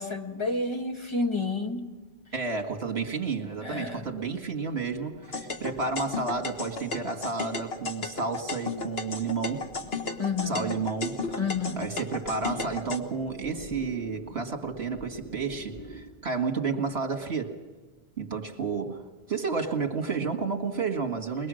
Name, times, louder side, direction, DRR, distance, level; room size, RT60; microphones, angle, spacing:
voice 1, 0.0-1.9 3.6-4.1 10.2-10.7 11.4-11.9, left 3 dB, 25° left, 1.7 m, -30 dB
voice 2, 2.3-9.7 10.5-11.4 11.8-17.6 18.2-21.5, right 4 dB, 70° right, 2.2 m, -31 dB
sound 1, 3.8-16.0, left 1 dB, 10° left, 3.6 m, -48 dB
sound 2, 5.3-13.0, left 4 dB, 65° left, 1.6 m, -34 dB
22.5 x 22.0 x 6.4 m
omnidirectional pair, 1.1 m